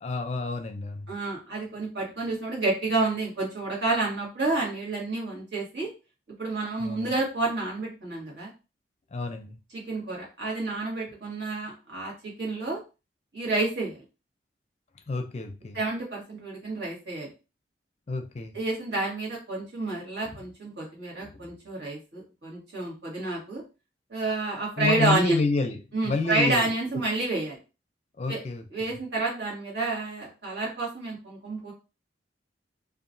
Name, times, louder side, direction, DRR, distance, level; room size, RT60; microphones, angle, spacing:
voice 1, 0.0-1.1 6.8-7.1 9.1-9.6 15.1-15.8 18.1-18.6 20.2-20.3 21.2-21.5 24.8-26.7 28.2-29.0, left 3 dB, 40° left, 6 dB, 0.4 m, -29 dB
voice 2, 1.1-5.9 6.4-8.5 9.7-12.8 13.3-14.0 15.7-17.3 18.5-23.6 24.1-25.4 25.9-27.6 28.3-28.4 28.7-31.7, right 2 dB, 70° right, -3 dB, 1.5 m, -29 dB
2.8 x 2.4 x 2.6 m, 0.30 s
head